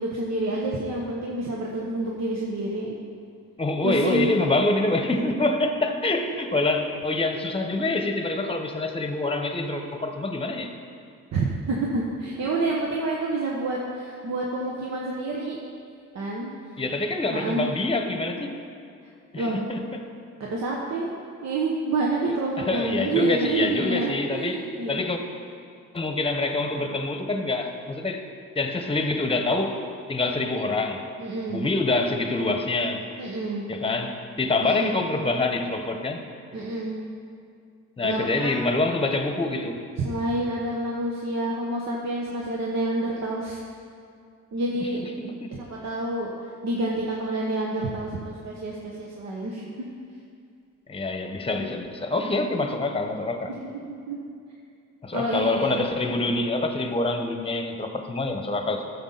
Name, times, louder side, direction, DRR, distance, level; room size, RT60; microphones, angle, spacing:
voice 1, 0.0-2.9 3.8-4.3 11.3-15.6 16.1-16.8 17.3-17.7 19.4-19.6 20.5-21.1 21.4-25.1 31.2-31.7 33.2-33.7 34.6-34.9 36.5-37.0 38.0-38.5 40.0-43.6 44.5-45.0 45.5-49.9 52.2-52.3 53.5-54.2 55.1-55.9, right 2 dB, 60° right, -3 dB, 1.2 m, -28 dB
voice 2, 3.6-10.7 16.8-18.5 19.3-19.8 22.6-24.6 24.9-25.2 25.9-28.2 28.5-29.8 30.1-31.0 31.5-33.0 33.7-36.2 38.0-39.8 45.2-45.6 50.9-53.5 55.0-58.9, left 2 dB, 20° left, 5 dB, 1.0 m, -26 dB
12.5 x 7.0 x 4.1 m, 2.4 s
cardioid pair, 90°, 30 cm